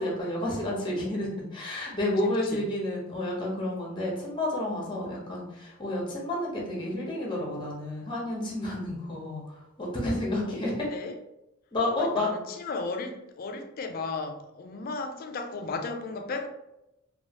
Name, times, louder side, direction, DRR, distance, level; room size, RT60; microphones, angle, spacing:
voice 1, 0.0-10.9 11.7-12.3, left 1 dB, 20° left, -3 dB, 0.8 m, -30 dB
voice 2, 2.2-2.6 10.7-11.2 12.0-16.5, left 3 dB, 45° left, 5 dB, 0.3 m, -35 dB
3.0 x 2.3 x 2.8 m, 0.89 s
head